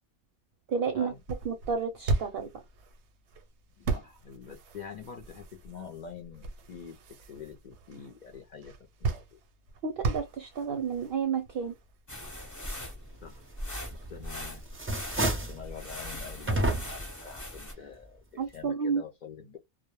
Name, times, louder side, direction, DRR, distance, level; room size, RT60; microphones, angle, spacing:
voice 1, 0.7-1.1 1.4-2.5 9.8-11.7 18.4-19.0, right 6 dB, 60° right, 0.7 m, -31 dB
sound 1, 0.9-14.9, right 3 dB, 90° right, 0.9 m, -38 dB
voice 2, 3.8-7.0 7.3-8.7 9.0-9.2 13.2-13.4 13.9-14.6 15.2-18.1 18.5-19.6, left 6 dB, 55° left, 0.5 m, -45 dB
sound 2, 12.1-17.7, left 1 dB, 20° left, 0.7 m, -41 dB
sound 3, 13.9-14.3 14.7-15.6 16.5-17.1, right 1 dB, 20° right, 0.3 m, -29 dB
2.1 x 2.0 x 2.9 m
omnidirectional pair, 1.1 m